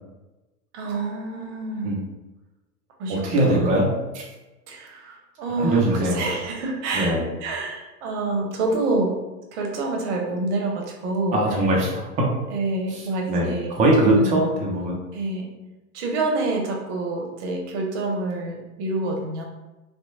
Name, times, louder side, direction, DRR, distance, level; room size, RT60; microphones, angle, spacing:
voice 1, 0.7-1.9 3.0-3.7 4.7-9.1 9.5-11.4 12.5-13.7 14.0-14.5 15.1-15.5 15.9-19.4, right 2 dB, 50° right, 1 dB, 0.8 m, -27 dB
voice 2, 3.1-4.2 5.6-6.2 6.9-7.2 11.3-12.0 12.9-13.0 13.3-15.0, right 1 dB, 15° right, -2 dB, 0.4 m, -21 dB
2.8 x 2.1 x 2.6 m, 1.1 s
hypercardioid pair, 100°, 46 cm